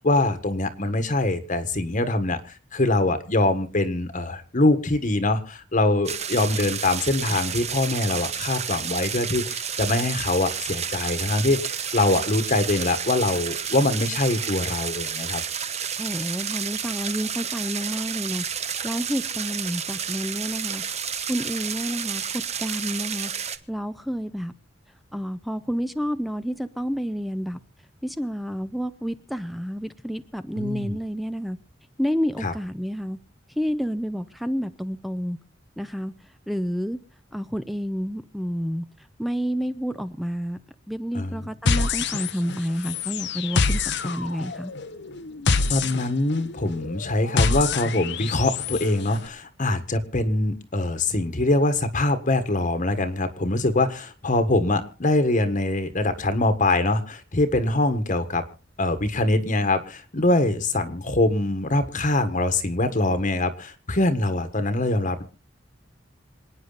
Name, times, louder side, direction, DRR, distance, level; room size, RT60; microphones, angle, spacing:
voice 1, 0.0-2.4 2.7-15.4 30.6-31.0 32.4-32.5 41.1-41.4 45.7-58.4 58.8-65.2, left 2 dB, 45° left, 10 dB, 1.5 m, -23 dB
sound 1, 6.0-23.6, right 7 dB, 35° right, 1.1 m, -31 dB
voice 2, 16.0-18.4 18.8-20.8 21.3-23.3 23.7-24.5 25.1-27.6 28.0-31.6 32.0-33.2 33.6-35.4 35.8-36.1 36.5-37.0 37.3-38.9 39.2-40.6 40.9-44.7, equal, ahead, 11 dB, 0.7 m, -29 dB
sound 2, 41.7-42.6 42.8-48.8, left 4 dB, 65° left, 1.0 m, -26 dB
27.0 x 9.6 x 4.1 m, 0.35 s
head